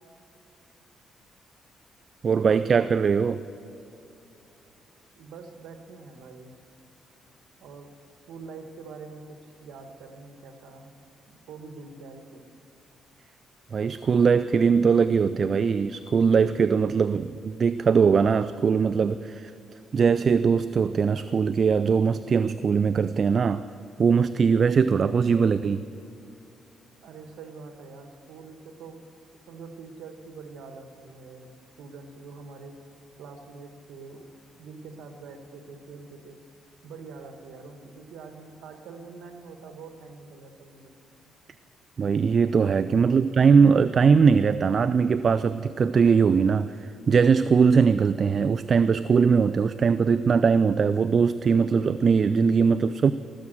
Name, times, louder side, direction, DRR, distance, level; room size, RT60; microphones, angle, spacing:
voice 1, 2.2-3.4 13.7-19.5 19.9-23.6 24.0-25.8 42.0-53.1, right 6 dB, 45° right, 13 dB, 0.3 m, -21 dB
voice 2, 5.2-6.6 7.6-7.9 8.3-10.9 11.3-12.5 27.0-32.7 33.2-34.3 34.6-36.4 36.8-40.9 52.8-53.0, right 4 dB, 80° right, 6 dB, 1.4 m, -45 dB
18.5 x 7.3 x 7.7 m, 2.9 s
cardioid pair, 90°, 0 cm